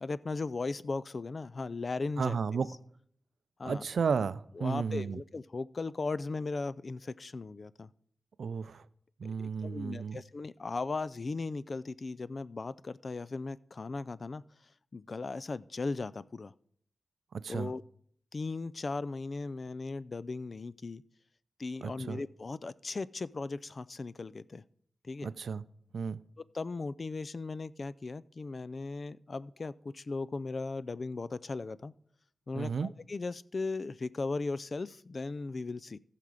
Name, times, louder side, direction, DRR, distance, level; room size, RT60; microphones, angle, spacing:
voice 1, 0.0-2.4 3.6-3.9 4.5-7.9 9.2-14.4 14.9-16.5 17.5-17.8 18.3-21.0 21.6-24.6 25.0-25.3 26.5-31.9 32.5-36.0, left 3 dB, 55° left, 18 dB, 0.4 m, -37 dB
voice 2, 2.2-2.7 3.6-5.2 8.4-8.8 9.2-10.2 17.4-17.7 21.8-22.2 25.2-25.6 25.9-26.2 32.5-32.9, right 5 dB, 80° right, 16 dB, 0.4 m, -33 dB
14.5 x 5.9 x 4.9 m, 0.63 s
cardioid pair, 45°, 0 cm